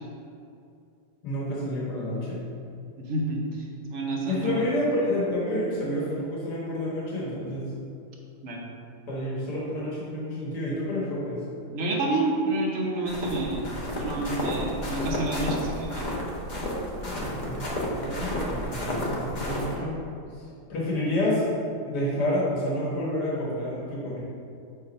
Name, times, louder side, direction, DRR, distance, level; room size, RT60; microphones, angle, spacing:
voice 1, 1.2-2.4 4.3-7.7 9.1-11.4 17.0-19.9 20.3-21.4 21.8-24.2, left 1 dB, 80° left, -6 dB, 1.9 m, -29 dB
voice 2, 3.0-3.6 3.9-4.6 8.4-8.7 11.7-16.1, right 2 dB, 55° right, -2 dB, 1.3 m, -29 dB
sound 1, 13.1-19.7, left 1 dB, 35° left, 1.0 m, -31 dB
7.3 x 3.5 x 5.3 m, 2.5 s
omnidirectional pair, 1.8 m